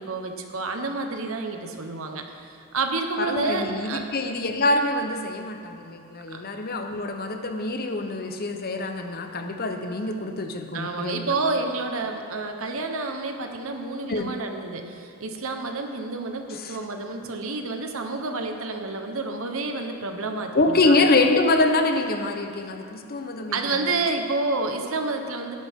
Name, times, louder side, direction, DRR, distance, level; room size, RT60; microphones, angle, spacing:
voice 1, 0.0-2.5 2.7-4.0 6.3-6.4 10.7-21.0 23.5-25.5, right 3 dB, 65° right, 5 dB, 1.1 m, -29 dB
voice 2, 3.2-11.4 14.1-14.3 16.5-16.8 20.5-23.9, left 2 dB, 45° left, 5 dB, 0.8 m, -25 dB
17.0 x 11.0 x 3.7 m, 2.5 s
head